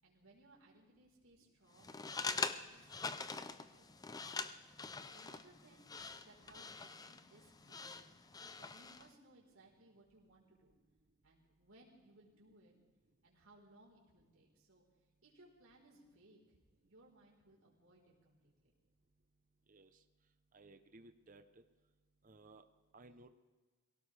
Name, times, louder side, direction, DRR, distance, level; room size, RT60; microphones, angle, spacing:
voice 1, 0.0-8.2 8.6-10.7 11.2-12.7 13.2-14.8 15.2-16.6 16.8-18.7, right 1 dB, 65° right, -3 dB, 4.3 m, -65 dB
sound 1, 1.8-9.1, left 4 dB, 15° left, 0.5 m, -44 dB
voice 2, 20.5-21.4 22.2-22.6 22.9-23.3, right 2 dB, 35° right, 9 dB, 0.7 m, -59 dB
23.0 x 17.0 x 3.4 m, 1.3 s
head